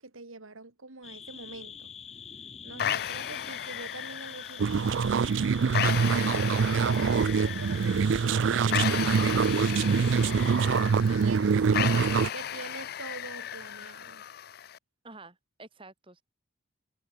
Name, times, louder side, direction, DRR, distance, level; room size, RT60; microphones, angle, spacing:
voice 1, 0.0-1.9 2.6-11.9 12.3-14.3, right 3 dB, 85° right, 2.3 m, -45 dB
sound 1, 1.0-10.6, left 7 dB, 30° left, 2.3 m, -46 dB
sound 2, 2.8-14.8, left 9 dB, 50° left, 0.4 m, -35 dB
sound 3, 4.6-12.3, right 5 dB, 65° right, 0.4 m, -25 dB
voice 2, 15.0-16.2, right 3 dB, 25° right, 2.0 m, -49 dB
head